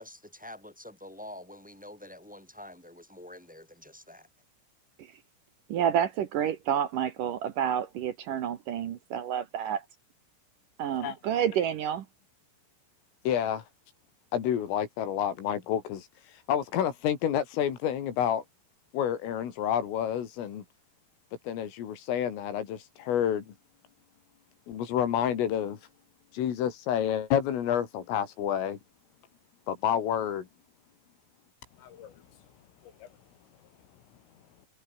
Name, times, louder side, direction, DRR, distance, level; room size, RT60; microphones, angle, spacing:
voice 1, 0.0-4.3, left 1 dB, ahead, 3.1 m, -47 dB
voice 2, 5.7-9.8 10.8-12.1, right 9 dB, 70° right, 2.0 m, -29 dB
voice 3, 13.3-13.7 14.3-18.4 18.9-20.7 21.4-23.5 24.7-25.9 26.3-28.8 29.7-30.5 31.8-32.4 32.8-33.1, left 9 dB, 85° left, 5.6 m, -29 dB
omnidirectional pair, 5.7 m